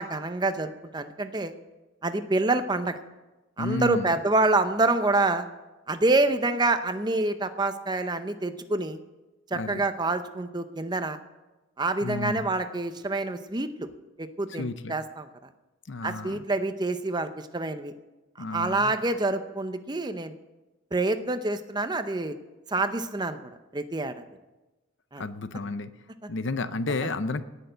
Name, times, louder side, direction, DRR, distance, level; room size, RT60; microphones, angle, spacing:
voice 1, 0.0-1.5 2.0-3.0 3.6-5.5 5.9-9.0 9.5-11.2 11.8-13.9 14.2-15.3 16.0-17.9 18.5-20.3 20.9-22.4 22.7-23.4 23.7-24.2 25.1-25.2 26.2-26.3, right 2 dB, 20° right, 10 dB, 0.6 m, -27 dB
voice 2, 3.6-4.1 9.5-9.8 12.0-12.5 14.6-14.9 15.9-16.4 18.4-18.9 25.2-25.9 26.3-27.4, left 3 dB, 55° left, 12 dB, 0.6 m, -31 dB
17.5 x 6.8 x 8.0 m, 1.1 s
head